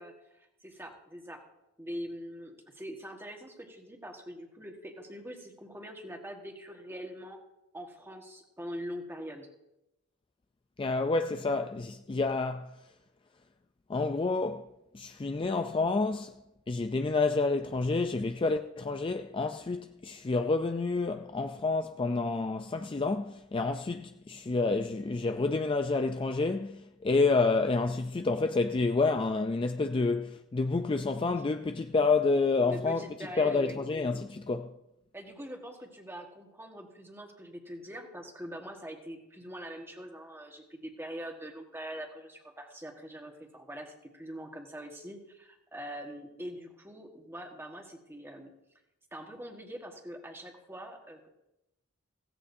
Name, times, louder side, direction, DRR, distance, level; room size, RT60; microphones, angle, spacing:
voice 1, 0.0-1.4 1.8-7.4 7.7-9.5 32.6-33.8 35.1-48.5 49.1-51.3, equal, 10° right, 1.5 m, -43 dB
voice 2, 10.8-12.7 13.9-14.7 14.9-16.4 16.7-33.0 33.4-34.7, left 3 dB, 25° left, 0.4 m, -29 dB
16.0 x 15.0 x 2.7 m
head